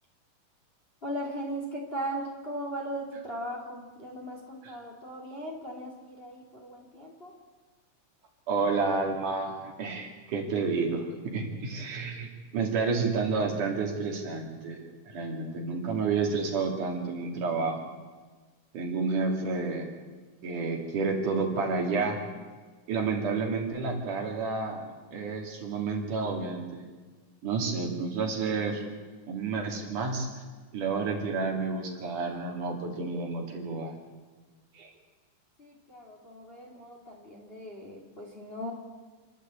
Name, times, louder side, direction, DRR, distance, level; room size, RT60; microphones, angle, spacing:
voice 1, 1.0-7.3 35.6-38.7, right 1 dB, 20° left, 0 dB, 2.7 m, -38 dB
voice 2, 8.5-14.8 15.1-17.9 18.7-19.9 20.4-22.2 22.9-24.8 25.1-26.8 27.4-28.8 29.3-30.3 30.7-34.0 34.7-34.9, right 4 dB, 70° right, 1 dB, 4.2 m, -30 dB
28.5 x 12.0 x 8.4 m, 1.4 s
omnidirectional pair, 3.8 m